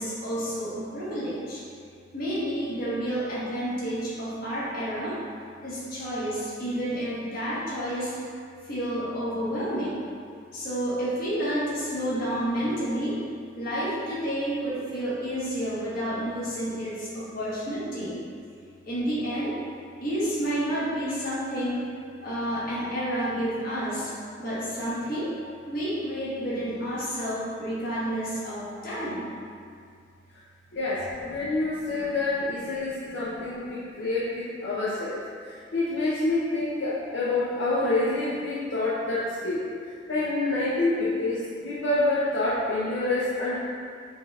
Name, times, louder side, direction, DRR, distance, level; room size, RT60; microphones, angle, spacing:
voice 1, 0.0-1.6 2.1-5.2 5.6-8.2 8.7-10.0 10.5-13.2 13.5-18.2 18.9-19.5 20.0-21.9 22.2-24.1 24.4-25.3 25.7-29.3 31.4-31.5, equal, 50° left, -9 dB, 1.2 m, -30 dB
voice 2, 30.7-39.6 39.9-43.6, left 2 dB, 75° left, -8 dB, 0.6 m, -27 dB
5.2 x 3.3 x 2.4 m, 2.3 s
head